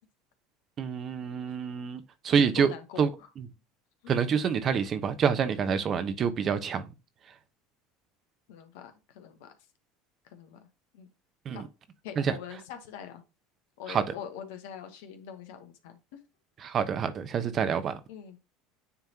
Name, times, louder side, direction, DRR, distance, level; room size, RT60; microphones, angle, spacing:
voice 1, 0.8-2.7 3.0-3.1 4.1-6.9 11.4-11.6 12.2-12.3 13.9-14.0 16.6-18.0, right 7 dB, 40° right, 0.9 m, -27 dB
voice 2, 2.6-3.3 4.0-4.1 8.5-9.6 10.2-10.6 10.9-11.1 11.5-11.6 12.0-13.2 13.8-16.2 16.7-16.8 18.1-18.4, left 8 dB, 75° left, 1.2 m, -44 dB
9.5 x 3.5 x 2.9 m
hypercardioid pair, 75°, 0 cm